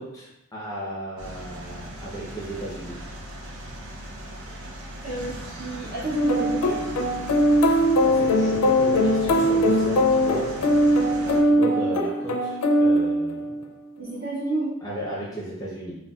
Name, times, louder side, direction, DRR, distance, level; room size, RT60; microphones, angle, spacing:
voice 1, 0.0-3.0 8.0-10.5 11.2-13.5 14.8-16.0, right 1 dB, 15° left, -6 dB, 0.5 m, -34 dB
sound 1, 1.2-11.4, right 1 dB, 75° right, 0.6 m, -38 dB
voice 2, 5.0-6.8 14.0-14.7, right 2 dB, 45° right, -10 dB, 1.5 m, -30 dB
sound 2, 6.1-13.6, equal, 80° left, 0.4 m, -21 dB
3.9 x 2.1 x 2.3 m, 0.88 s
head